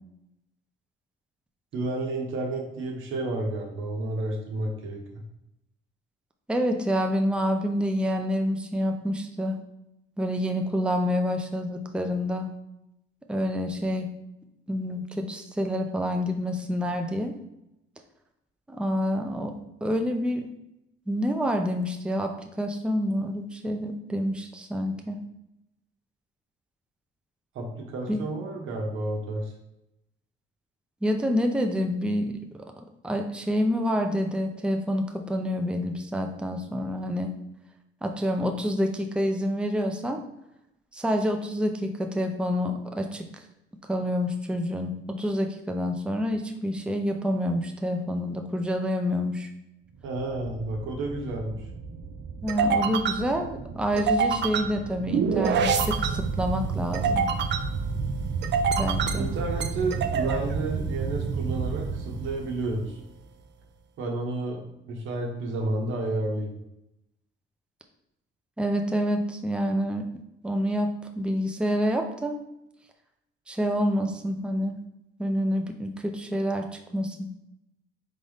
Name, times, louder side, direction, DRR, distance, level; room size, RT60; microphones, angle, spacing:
voice 1, 1.7-5.2 27.5-29.5 50.0-51.6 59.1-63.0 64.0-66.5, right 2 dB, 85° right, 1 dB, 1.1 m, -31 dB
voice 2, 6.5-9.6 10.2-12.5 13.3-14.1 14.7-17.3 18.7-19.5 19.8-20.5 21.1-25.2 28.1-28.2 31.0-32.4 33.0-37.3 38.0-40.2 40.9-43.2 43.9-49.5 52.4-57.3 58.8-59.3 68.6-70.1 70.4-70.9 71.2-72.4 73.5-74.8 75.2-77.3, equal, 5° right, 4 dB, 0.6 m, -27 dB
sound 1, 50.2-62.9, right 5 dB, 60° right, 0.5 m, -28 dB
3.9 x 3.8 x 3.5 m, 0.87 s
cardioid pair, 90°, 20 cm